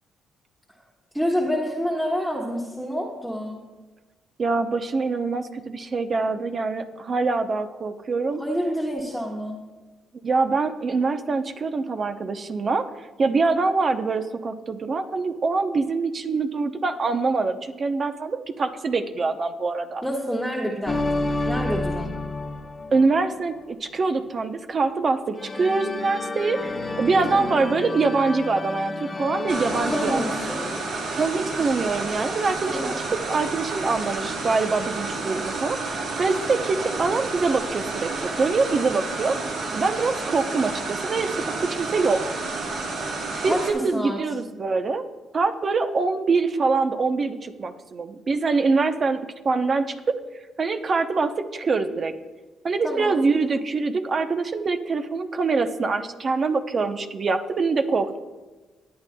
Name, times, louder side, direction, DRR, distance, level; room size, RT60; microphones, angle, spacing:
voice 1, 1.1-3.6 8.4-9.6 20.0-22.1 27.3-27.5 29.9-30.6 32.7-33.0 43.5-44.2 52.8-53.2, equal, 5° right, -4 dB, 1.6 m, -28 dB
voice 2, 4.4-8.4 10.2-20.0 22.9-30.4 31.2-32.9 33.2-39.4 39.7-41.4 41.7-42.4 43.4-45.0 45.3-50.2 50.6-52.1 52.6-58.2, right 4 dB, 45° right, 8 dB, 0.7 m, -24 dB
sound 1, 20.9-23.5 25.4-31.6, left 2 dB, 30° left, 1.1 m, -30 dB
sound 2, 29.5-43.7, right 3 dB, 85° right, 2.0 m, -30 dB
19.0 x 9.1 x 2.3 m, 1.2 s
cardioid pair, 90°, 0 cm